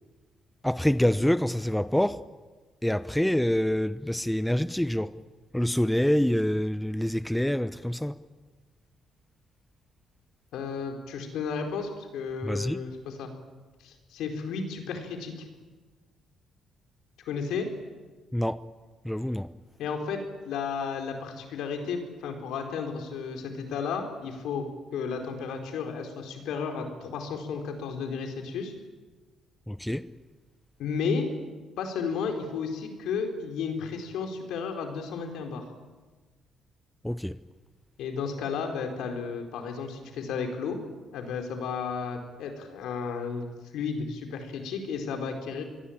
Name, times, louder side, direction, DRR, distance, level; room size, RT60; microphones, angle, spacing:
voice 1, 0.6-2.3 2.8-5.2 5.5-8.2 12.4-12.8 18.3-18.6 19.0-19.5 29.7-30.1 37.0-37.4, equal, 5° left, 0.8 m, -26 dB
voice 2, 10.5-13.3 13.8-15.5 17.3-17.7 19.8-20.2 20.4-24.7 24.9-28.7 30.8-31.3 31.8-35.7 38.0-40.8 41.1-43.5 43.7-45.6, left 5 dB, 85° left, 4.5 m, -33 dB
26.0 x 21.5 x 8.9 m
cardioid pair, 90°, 0 cm